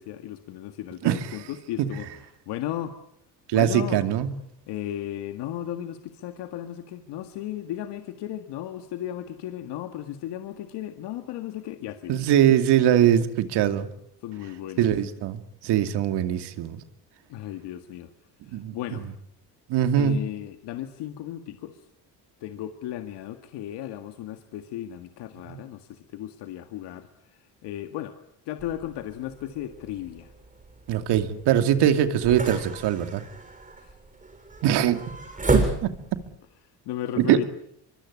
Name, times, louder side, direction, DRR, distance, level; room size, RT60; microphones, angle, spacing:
voice 1, 0.0-2.1 2.5-2.9 3.5-4.0 4.7-12.1 14.2-14.9 17.3-18.1 18.5-19.0 20.0-21.8 22.4-27.1 27.6-28.1 28.5-30.3 31.8-31.9 33.8-33.9 36.9-37.4, left 12 dB, 85° left, 7 dB, 2.0 m, -35 dB
voice 2, 3.5-4.3 12.1-13.9 14.8-16.8 18.5-18.7 19.7-20.2 25.5-25.6 30.9-33.2 34.6-35.0 35.5-35.9 37.2-37.4, right 10 dB, 85° right, 9 dB, 2.6 m, -22 dB
sound 1, 28.6-36.3, right 2 dB, 20° right, 7.7 m, -32 dB
25.0 x 23.5 x 9.7 m, 0.72 s
cardioid pair, 100°, 40 cm